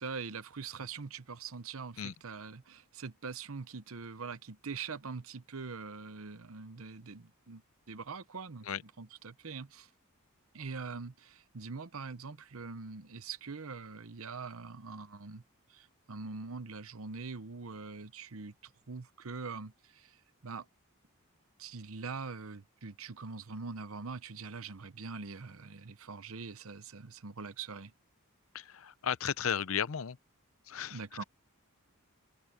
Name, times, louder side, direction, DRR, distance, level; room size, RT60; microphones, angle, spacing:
voice 1, 0.0-7.6 7.9-9.9 10.5-15.4 15.7-20.2 20.4-20.7 21.6-27.9 30.9-31.2, right 4 dB, 70° right, 0.9 m, -43 dB
voice 2, 28.5-30.2 30.7-31.2, left 8 dB, 65° left, 0.6 m, -35 dB
head